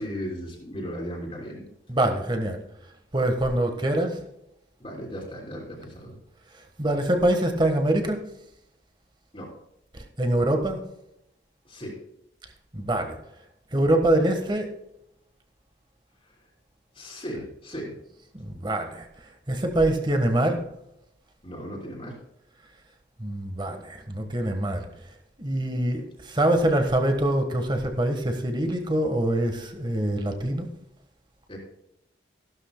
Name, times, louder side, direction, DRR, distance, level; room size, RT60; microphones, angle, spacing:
voice 1, 0.0-1.7 4.8-6.2 9.3-9.5 11.6-12.0 16.9-17.9 21.4-22.2 31.5-31.6, equal, 30° left, -4 dB, 3.3 m, -36 dB
voice 2, 1.9-2.6 3.1-4.2 6.8-8.2 10.2-10.8 12.7-13.2 13.7-14.7 18.3-19.1 19.5-20.6 23.2-24.8 25.4-30.7, right 1 dB, 25° right, 5 dB, 1.4 m, -24 dB
15.0 x 12.0 x 2.2 m, 0.83 s
head